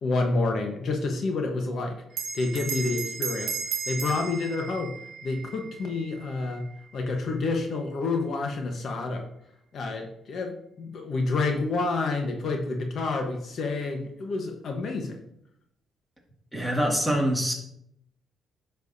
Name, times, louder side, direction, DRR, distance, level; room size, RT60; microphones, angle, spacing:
voice 1, 0.0-2.0 2.3-3.5 3.9-4.9 5.2-6.7 6.9-9.3 9.7-15.2, left 3 dB, 60° left, 3 dB, 1.2 m, -28 dB
Bell, 2.1-7.0, right 6 dB, 80° right, 1.1 m, -35 dB
voice 2, 16.5-17.5, equal, ahead, -1 dB, 2.2 m, -24 dB
9.9 x 6.5 x 2.7 m, 0.75 s
cardioid pair, 90°, 0 cm